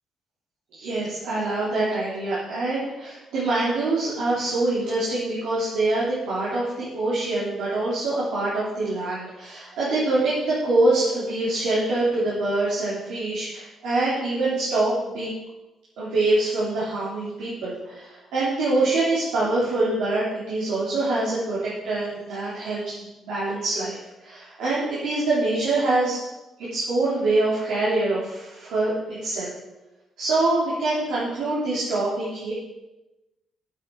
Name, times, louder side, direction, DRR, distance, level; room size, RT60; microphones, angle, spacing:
voice 1, 0.7-15.3 16.0-21.6 21.8-26.2 26.6-28.9 29.2-29.5 30.2-32.5, right 2 dB, 85° right, -9 dB, 3.6 m, -25 dB
9.6 x 9.0 x 4.9 m, 1.0 s
cardioid pair, 90°, 0 cm